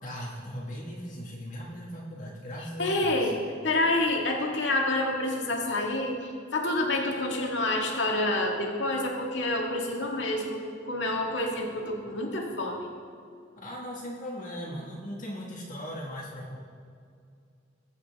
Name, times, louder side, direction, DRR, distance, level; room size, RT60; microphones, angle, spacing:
voice 1, 0.0-3.3 13.6-16.6, equal, 45° left, -3 dB, 1.5 m, -38 dB
voice 2, 2.8-3.4 3.6-12.9, left 2 dB, 75° left, 0 dB, 1.8 m, -28 dB
21.5 x 8.0 x 3.5 m, 2.4 s
head